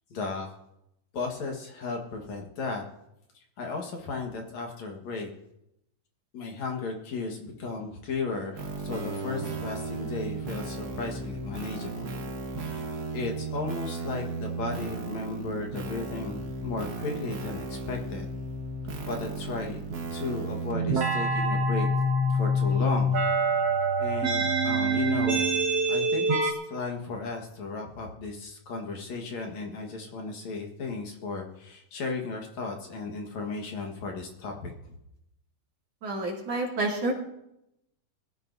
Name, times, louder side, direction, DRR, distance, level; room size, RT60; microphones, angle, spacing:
voice 1, 0.1-0.5 1.1-2.8 3.3-5.3 6.3-12.1 12.6-12.8 13.1-18.3 19.1-19.8 20.1-21.9 22.3-23.2 24.0-25.5 25.9-34.7, left 3 dB, 60° left, 1 dB, 2.7 m, -35 dB
sound 1, 8.6-26.5, right 2 dB, 65° right, 0.9 m, -29 dB
voice 2, 36.0-37.1, right 2 dB, 50° right, -3 dB, 3.5 m, -29 dB
22.0 x 14.0 x 2.7 m, 0.83 s
omnidirectional pair, 3.8 m